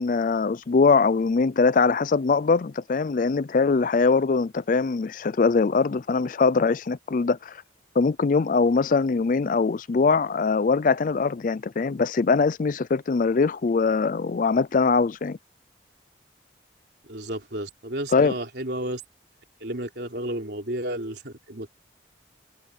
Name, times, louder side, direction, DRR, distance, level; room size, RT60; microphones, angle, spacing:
voice 1, 0.0-7.6 8.0-15.4 18.1-18.3, left 4 dB, 45° left, 0.4 m, -22 dB
voice 2, 17.0-19.0 19.6-21.7, right 1 dB, 65° right, 4.0 m, -32 dB
head